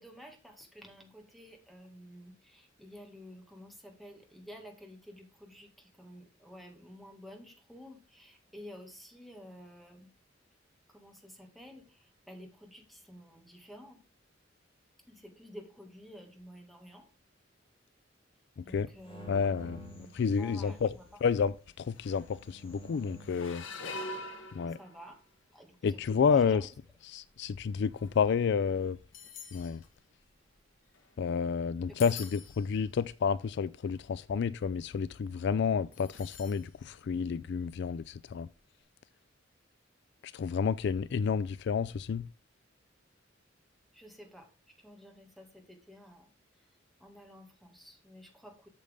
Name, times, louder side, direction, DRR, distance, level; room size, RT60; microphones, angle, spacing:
voice 1, 0.0-10.1 10.9-14.0 15.1-17.1 18.6-19.5 20.0-21.2 24.7-25.2 25.5-26.0 26.3-26.7 31.9-32.0 43.9-46.7 47.0-48.7, equal, ahead, 2.0 m, -51 dB
voice 2, 18.6-18.9 19.3-20.9 21.2-23.6 24.5-24.8 25.8-26.7 27.1-29.0 29.5-29.8 31.2-38.5 40.2-42.3, left 6 dB, 60° left, 0.3 m, -30 dB
sound 1, 19.0-21.0 22.0-23.5, equal, 30° left, 2.7 m, -51 dB
sound 2, 19.9-20.3 20.6-20.9 21.6-21.7 21.9-22.5 23.2-25.3 26.0-26.3 27.0-31.4 31.8-32.8 33.5-33.6 33.8-34.1 35.9-36.7 37.0-37.1 38.5-38.6, left 3 dB, 90° left, 1.7 m, -46 dB
8.6 x 6.5 x 3.7 m
head